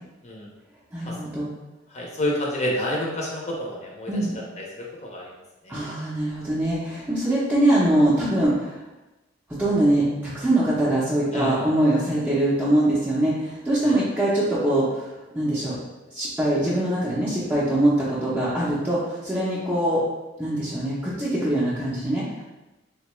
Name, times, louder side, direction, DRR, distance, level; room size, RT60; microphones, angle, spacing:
voice 1, 0.9-1.5 4.1-4.4 5.7-8.8 9.6-15.8 16.1-20.0 20.4-22.4, right 1 dB, 10° right, -9 dB, 0.5 m, -23 dB
voice 2, 1.9-5.3 5.6-6.0 11.3-11.7 13.8-14.0, left 1 dB, 35° left, -3 dB, 0.6 m, -30 dB
3.7 x 2.2 x 3.0 m, 1.0 s
head